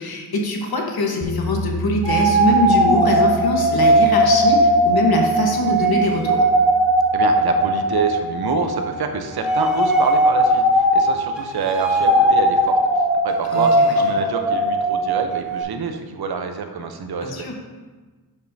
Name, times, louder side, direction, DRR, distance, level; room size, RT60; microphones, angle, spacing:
voice 1, 0.0-6.4 13.5-13.9 14.2-14.3 17.2-17.6, left 2 dB, 75° left, 1 dB, 1.2 m, -22 dB
sound 1, 1.2-11.2, equal, 25° left, 0.6 m, -34 dB
sound 2, 2.0-9.0 9.3-15.6, right 1 dB, ahead, 1.6 m, -18 dB
voice 2, 7.1-12.8 13.2-17.5, right 5 dB, 80° right, 6 dB, 0.8 m, -27 dB
10.5 x 5.3 x 2.7 m, 1.3 s
wide cardioid pair, 155°, 37 cm